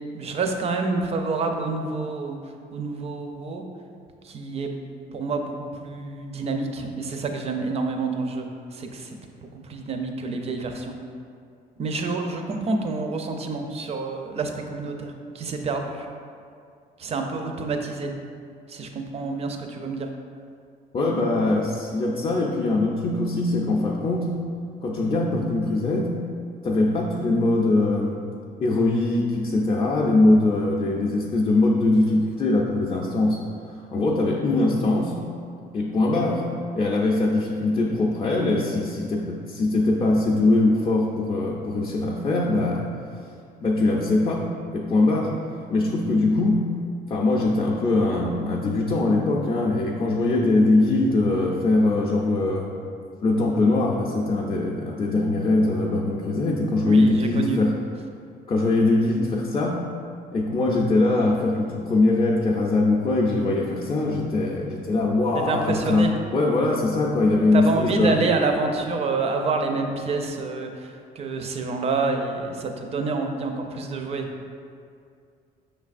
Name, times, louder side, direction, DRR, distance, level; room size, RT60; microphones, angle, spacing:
voice 1, 0.0-3.6 4.2-4.8 5.1-9.2 9.4-11.0 11.8-16.1 17.0-18.1 18.7-20.1 56.8-57.6 65.3-66.1 67.5-74.3, right 3 dB, 40° right, 4 dB, 0.4 m, -28 dB
voice 2, 20.9-24.3 24.8-26.1 26.6-28.2 28.6-33.4 33.9-35.1 35.7-36.4 36.7-42.9 43.6-45.3 45.7-46.6 47.1-52.7 53.2-57.7 58.5-59.8 60.3-68.1, left 2 dB, 30° left, -3 dB, 0.4 m, -22 dB
5.5 x 3.2 x 2.5 m, 2.3 s
cardioid pair, 110°, 17 cm